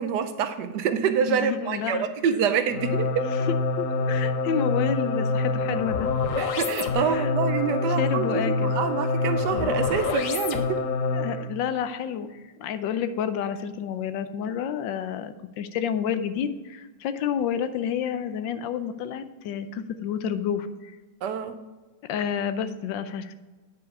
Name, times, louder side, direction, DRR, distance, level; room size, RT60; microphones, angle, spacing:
voice 1, 0.0-3.3 6.3-10.8 21.2-21.6, right 7 dB, 75° right, 9 dB, 1.2 m, -26 dB
voice 2, 1.3-2.1 3.5-6.1 7.0-7.3 7.6-8.7 11.1-20.9 22.1-23.3, left 8 dB, 80° left, 11 dB, 1.3 m, -30 dB
sound 1, 2.7-11.5, left 3 dB, 60° left, 0.9 m, -26 dB
9.4 x 5.1 x 4.7 m, 1.3 s
omnidirectional pair, 2.0 m